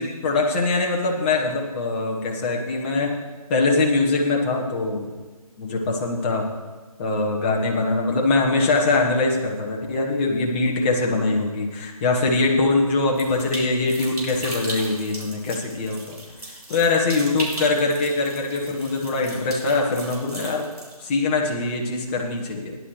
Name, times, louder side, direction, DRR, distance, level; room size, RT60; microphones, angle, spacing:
voice 1, 0.0-3.2 3.5-5.1 5.6-6.5 7.0-16.2 16.7-20.7 21.0-22.8, left 3 dB, 15° left, -1 dB, 1.2 m, -22 dB
sound 1, 13.2-21.0, right 1 dB, 75° right, 3.5 m, -37 dB
16.0 x 10.5 x 3.2 m, 1.3 s
figure-of-eight pair, 155°, 19 cm